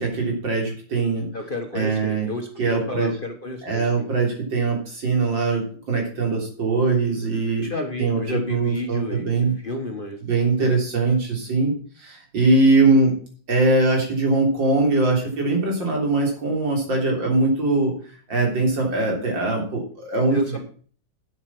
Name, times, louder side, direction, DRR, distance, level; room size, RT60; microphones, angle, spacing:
voice 1, 0.0-1.3 1.7-2.3 2.6-3.1 3.6-7.7 8.0-9.6 10.2-11.7 12.0-13.2 13.5-18.0 18.3-20.6, right 3 dB, 80° right, 0 dB, 4.3 m, -21 dB
voice 2, 1.3-4.1 7.6-9.3 9.6-10.2 10.6-10.8 20.3-20.6, left 2 dB, 30° left, 5 dB, 1.3 m, -31 dB
9.1 x 8.3 x 6.0 m, 0.43 s
omnidirectional pair, 2.0 m